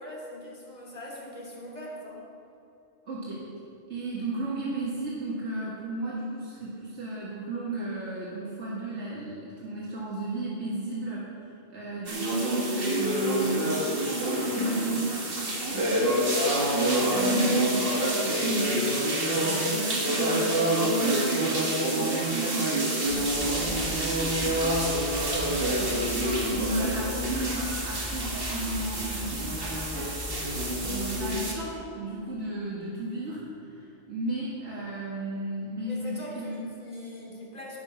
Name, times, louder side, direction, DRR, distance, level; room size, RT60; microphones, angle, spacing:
voice 1, 0.0-2.3 25.6-26.1 35.9-36.5 36.8-37.8, equal, 35° left, -5 dB, 3.2 m, -41 dB
voice 2, 3.0-3.4 3.9-30.2 30.8-36.7, right 2 dB, 80° right, -7 dB, 2.2 m, -34 dB
sound 1, 12.1-31.5, right 1 dB, 55° right, 1.9 m, -27 dB
sound 2, 23.1-31.3, left 2 dB, 5° left, 2.2 m, -39 dB
18.5 x 6.2 x 5.8 m, 2.9 s
omnidirectional pair, 1.2 m